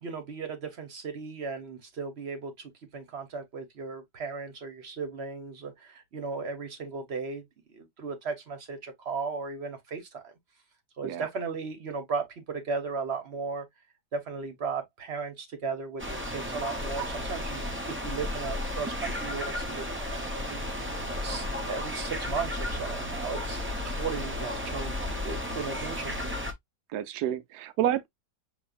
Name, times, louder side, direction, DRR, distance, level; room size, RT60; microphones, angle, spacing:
voice 1, 0.0-10.3 11.0-13.6 14.1-20.6 21.2-23.6 23.8-24.9 25.2-26.4, right 5 dB, 45° right, 1.2 m, -36 dB
sound 1, 16.0-26.5, left 1 dB, 15° right, 0.5 m, -33 dB
voice 2, 26.9-28.1, right 11 dB, 70° right, 1.1 m, -29 dB
6.9 x 2.9 x 2.4 m
omnidirectional pair, 1.8 m